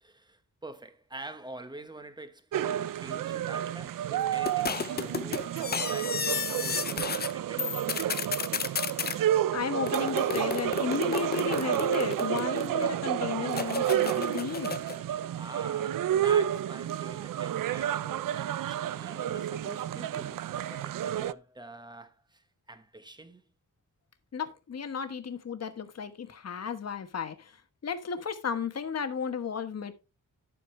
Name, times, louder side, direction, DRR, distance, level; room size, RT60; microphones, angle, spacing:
voice 1, 0.0-8.4 15.3-23.4, right 2 dB, 15° right, 1.1 m, -46 dB
sound 1, 2.5-21.3, right 11 dB, 75° right, 0.5 m, -30 dB
sound 2, 4.5-7.3 7.6-9.2 9.9-12.8 13.5-15.0, left 6 dB, 30° left, 0.5 m, -33 dB
voice 2, 9.5-14.8 24.3-27.5 27.8-29.9, left 6 dB, 50° left, 1.2 m, -34 dB
11.0 x 8.1 x 3.2 m
wide cardioid pair, 165°, 33 cm